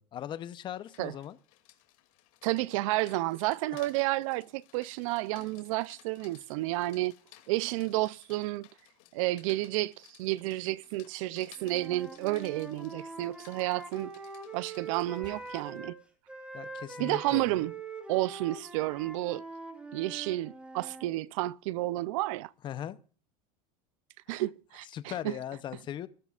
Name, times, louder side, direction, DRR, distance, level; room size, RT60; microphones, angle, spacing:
voice 1, 0.0-1.4 3.7-3.8 16.5-17.7 22.6-23.0 24.3-24.4 24.9-26.1, left 10 dB, 25° left, 0.7 m, -39 dB
Rain, 0.7-15.8, left 15 dB, 70° left, 2.5 m, -59 dB
voice 2, 2.4-7.1 7.5-8.7 9.1-9.9 10.2-14.1 14.5-16.0 17.0-17.7 18.1-19.4 19.9-22.5 24.3-25.3, right 18 dB, 65° right, 0.5 m, -31 dB
Wind instrument woodwind instrument, 11.6-16.0 16.3-21.1, right 3 dB, 5° right, 1.9 m, -44 dB
sound 1, 15.2-15.9, right 9 dB, 25° right, 0.6 m, -55 dB
20.0 x 12.0 x 2.4 m
supercardioid pair, 155°, 18 cm